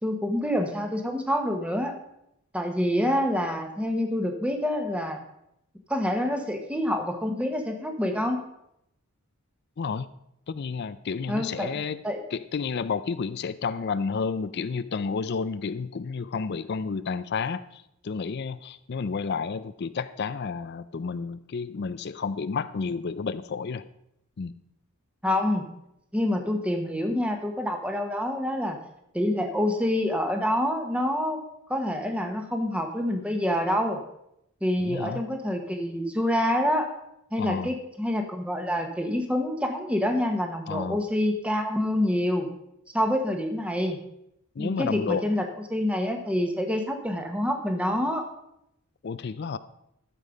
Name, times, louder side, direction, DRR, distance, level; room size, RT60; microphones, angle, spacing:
voice 1, 0.0-1.9 2.5-5.2 5.9-8.4 11.3-11.7 12.0-12.2 25.2-25.7 26.1-28.8 29.1-31.4 31.7-34.0 34.6-36.9 37.3-42.5 42.9-44.0 44.6-48.2, left 1 dB, 5° right, 5 dB, 1.2 m, -27 dB
voice 2, 10.5-12.0 12.3-23.8 24.4-24.5 34.8-35.2 37.4-37.7 40.7-41.1 44.6-45.2 49.0-49.6, left 5 dB, 50° left, 14 dB, 0.4 m, -31 dB
13.0 x 7.6 x 5.1 m, 0.80 s
head